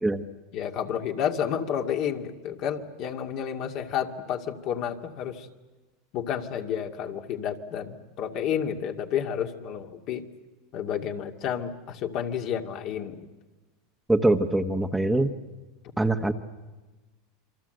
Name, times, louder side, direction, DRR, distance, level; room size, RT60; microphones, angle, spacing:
voice 1, 0.5-5.5 6.1-10.2 10.7-13.3, left 8 dB, 50° left, 4 dB, 2.3 m, -30 dB
voice 2, 14.1-15.3 16.0-16.3, right 2 dB, 5° right, 6 dB, 1.3 m, -23 dB
28.0 x 24.5 x 7.9 m, 1.2 s
supercardioid pair, 120°, 0 cm